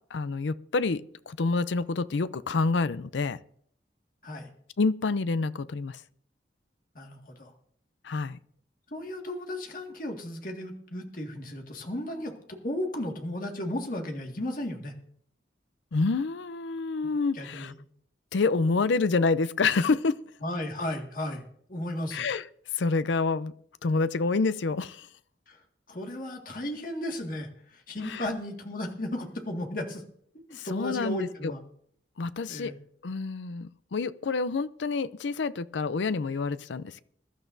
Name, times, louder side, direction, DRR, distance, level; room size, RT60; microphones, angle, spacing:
voice 1, 0.1-3.4 4.8-6.0 8.0-8.4 15.9-17.7 18.3-20.2 22.1-22.5 22.7-23.5 23.8-25.1 28.0-28.3 30.5-31.5 32.2-32.7 33.0-37.0, left 4 dB, 90° left, 15 dB, 0.5 m, -28 dB
voice 2, 7.0-7.5 8.9-15.0 17.3-17.8 20.4-21.4 21.7-22.3 25.5-25.6 25.9-30.0 30.3-31.6 32.5-32.8, left 1 dB, 50° left, 2 dB, 1.9 m, -35 dB
22.0 x 12.0 x 2.7 m, 0.63 s
head